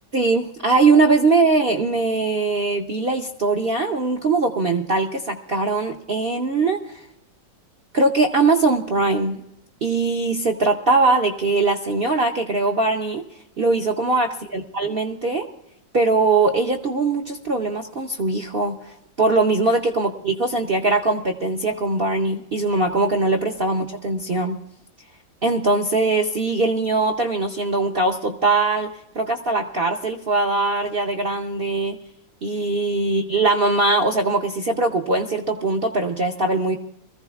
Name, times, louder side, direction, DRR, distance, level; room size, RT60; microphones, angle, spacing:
voice 1, 0.1-6.8 7.9-9.4 9.8-13.2 13.6-15.5 15.9-24.6 25.4-28.9 29.2-32.0 32.4-36.8, right 3 dB, 55° right, 3 dB, 0.6 m, -21 dB
22.5 x 14.5 x 2.4 m, 0.81 s
omnidirectional pair, 1.9 m